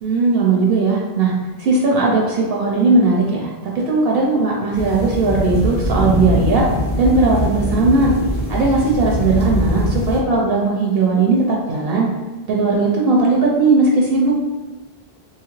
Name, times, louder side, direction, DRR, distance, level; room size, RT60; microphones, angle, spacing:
voice 1, 0.0-1.3 1.6-6.7 7.0-8.1 8.5-12.1 12.5-14.3, right 3 dB, 70° right, -2 dB, 0.8 m, -17 dB
sound 1, 4.7-10.2, equal, 10° left, 0.6 m, -22 dB
2.8 x 2.4 x 3.0 m, 1.2 s
omnidirectional pair, 1.0 m